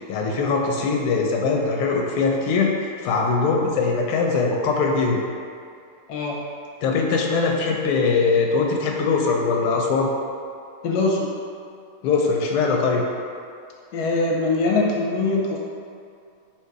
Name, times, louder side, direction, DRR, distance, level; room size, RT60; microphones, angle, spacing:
voice 1, 0.1-5.2 6.8-10.1 12.0-13.0, left 4 dB, 85° left, 1 dB, 1.5 m, -21 dB
voice 2, 6.1-6.5 10.8-11.3 13.9-15.6, left 3 dB, 65° left, -2 dB, 1.0 m, -22 dB
3.7 x 2.9 x 4.6 m, 2.4 s
omnidirectional pair, 2.3 m